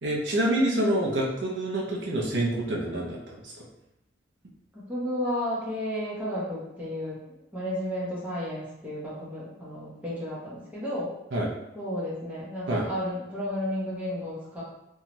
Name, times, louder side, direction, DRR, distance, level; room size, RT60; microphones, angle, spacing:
voice 1, 0.0-3.7 11.3-11.5 12.7-12.9, right 1 dB, 75° right, -3 dB, 0.6 m, -27 dB
voice 2, 4.7-7.2 7.5-11.1 11.7-14.6, left 1 dB, 10° right, -9 dB, 0.8 m, -32 dB
2.7 x 2.3 x 2.9 m, 0.88 s
head